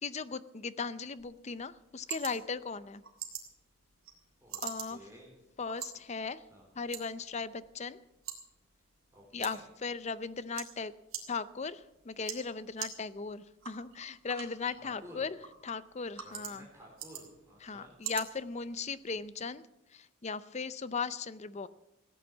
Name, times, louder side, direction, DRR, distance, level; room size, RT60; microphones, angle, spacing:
voice 1, 0.0-3.0 4.6-5.0 5.6-6.4 6.8-8.0 9.3-10.9 11.3-15.4 15.6-16.7 17.6-19.6 19.9-21.7, left 5 dB, 35° left, 15 dB, 0.5 m, -37 dB
sound 1, 1.2-19.2, right 10 dB, 80° right, 2.8 m, -47 dB
voice 2, 4.4-5.4 6.5-6.7 9.1-9.6 14.8-15.2 16.2-18.0, equal, 15° right, -3 dB, 3.6 m, -54 dB
16.5 x 9.0 x 7.2 m, 0.95 s
head